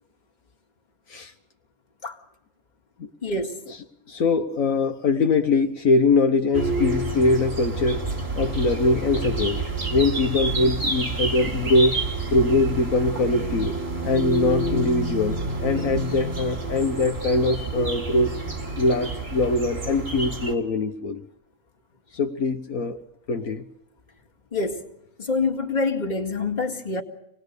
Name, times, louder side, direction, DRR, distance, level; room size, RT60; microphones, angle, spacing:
voice 1, 3.2-3.6 24.5-24.8 25.2-27.0, left 3 dB, 30° left, 2.2 m, -26 dB
voice 2, 4.1-8.1 8.3-9.6 9.9-12.0 12.3-13.8 14.0-18.4 18.8-21.2 22.1-23.0 23.3-23.7, left 3 dB, 70° left, 1.6 m, -22 dB
sound 1, 6.5-20.5, right 3 dB, 45° right, 3.0 m, -29 dB
26.5 x 19.5 x 6.7 m
omnidirectional pair, 1.5 m